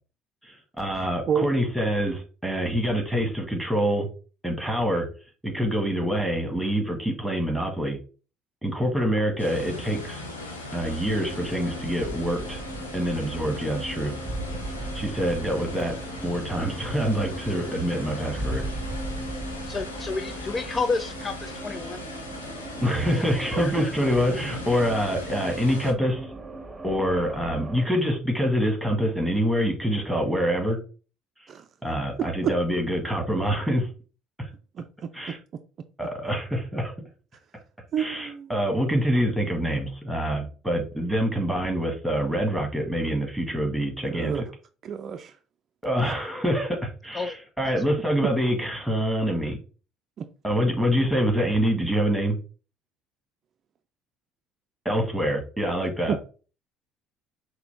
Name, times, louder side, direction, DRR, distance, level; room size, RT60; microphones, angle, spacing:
voice 1, 0.4-4.1 4.4-5.1 5.4-8.0 8.6-10.2 10.7-12.6 12.9-14.1 14.9-15.9 16.2-18.6 22.8-26.3 26.8-30.8 31.8-33.9 34.4-34.5 35.1-35.4 36.0-36.9 38.0-44.4 45.8-49.6 50.4-52.4 54.8-56.1, equal, 5° right, 1.6 m, -26 dB
sound 1, 9.4-25.9, left 2 dB, 85° left, 0.7 m, -39 dB
sound 2, 10.8-27.9, right 1 dB, 20° right, 0.8 m, -37 dB
voice 2, 19.7-22.1 23.4-23.9 47.1-47.4, left 4 dB, 30° left, 0.4 m, -30 dB
voice 3, 32.2-32.5 34.8-35.4 37.9-38.5 44.0-44.4 44.8-45.3 50.2-50.3 56.1-56.2, right 8 dB, 45° right, 0.4 m, -29 dB
5.7 x 2.1 x 3.4 m
hypercardioid pair, 60°, 0 cm